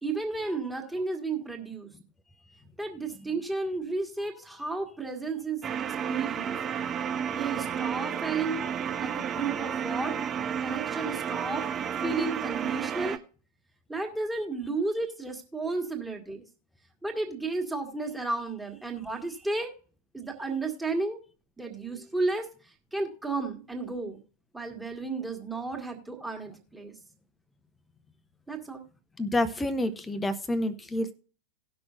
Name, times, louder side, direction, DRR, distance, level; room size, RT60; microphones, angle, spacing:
voice 1, 0.0-1.9 2.8-5.6 6.1-6.6 7.3-8.7 9.0-10.2 10.6-11.7 12.0-13.2 13.9-16.5 17.0-19.7 20.1-21.2 21.6-22.5 22.9-24.2 24.5-26.9 28.5-28.8, right 3 dB, 5° right, 1.9 m, -33 dB
sound 1, 5.6-13.2, right 8 dB, 25° right, 0.5 m, -31 dB
voice 2, 29.2-31.1, left 1 dB, 10° left, 0.9 m, -28 dB
18.5 x 6.1 x 2.5 m
figure-of-eight pair, 90°, 0 cm